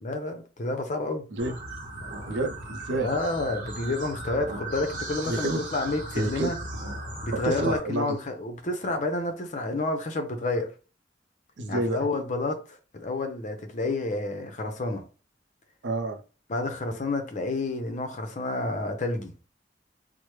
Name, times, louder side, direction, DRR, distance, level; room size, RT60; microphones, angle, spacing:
voice 1, 0.0-1.2 2.9-6.6 7.2-10.7 11.7-12.6 12.9-15.0 16.5-19.3, left 2 dB, 45° left, 0.6 m, -29 dB
sound 1, 1.4-7.8, right 2 dB, 45° right, 0.8 m, -37 dB
voice 2, 2.2-3.1 5.2-5.6 6.1-6.5 7.3-8.2 11.6-12.1 15.8-16.2, right 2 dB, 90° right, 0.5 m, -29 dB
3.2 x 2.0 x 3.0 m
head